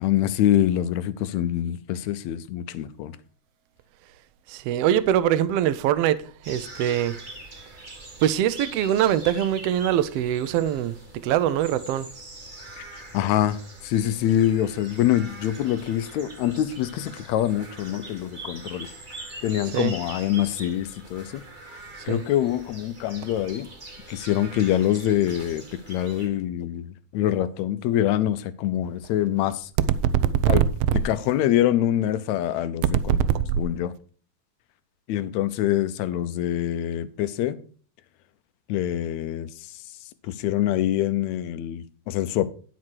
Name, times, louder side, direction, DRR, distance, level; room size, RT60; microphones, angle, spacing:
voice 1, 0.0-3.1 12.8-12.9 13.1-18.9 19.4-21.4 22.1-23.7 24.1-26.9 27.1-29.7 30.5-30.6 31.0-33.2 33.6-33.9 35.1-37.6 38.7-39.5 40.3-42.5, left 12 dB, 75° left, 1.9 m, -25 dB
voice 2, 4.5-6.2 6.5-7.2 8.2-10.9 11.2-12.1 19.7-19.9 22.1-22.2 30.4-31.0 33.1-33.5, right 11 dB, 75° right, 1.5 m, -22 dB
sound 1, 6.4-26.3, right 2 dB, 25° right, 1.0 m, -43 dB
10.5 x 6.1 x 4.6 m
omnidirectional pair, 3.4 m